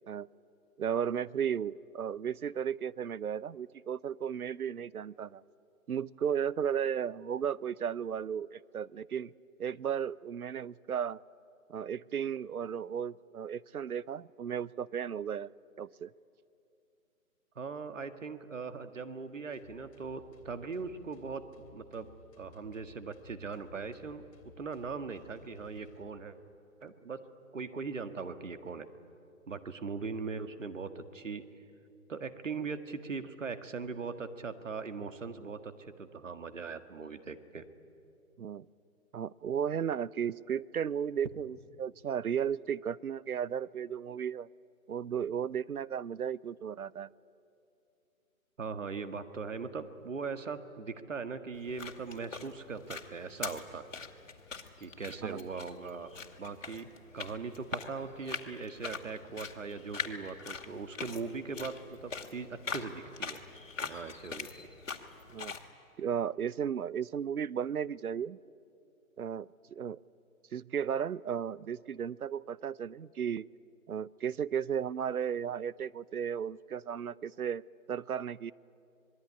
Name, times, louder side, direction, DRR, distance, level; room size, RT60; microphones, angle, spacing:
voice 1, 0.8-5.4 5.9-9.3 9.6-11.2 11.7-15.5 15.8-16.1 38.4-38.7 39.1-44.5 44.9-47.1 55.2-55.4 65.3-65.6 66.0-68.4 69.2-70.0 70.5-73.5 73.9-78.5, right 8 dB, 85° right, 22 dB, 0.8 m, -34 dB
voice 2, 17.6-21.4 21.7-22.1 22.4-24.2 24.6-26.4 26.8-27.2 27.5-28.9 29.5-31.4 32.1-37.7 48.6-53.8 54.8-56.1 56.4-56.9 57.1-63.4 63.8-64.5, right 4 dB, 60° right, 10 dB, 1.8 m, -40 dB
sound 1, 19.5-26.1, left 4 dB, 25° left, 2.6 m, -58 dB
sound 2, 51.5-65.7, left 5 dB, 65° left, 2.3 m, -43 dB
26.5 x 21.0 x 9.8 m, 2.6 s
hypercardioid pair, 175°, 43 cm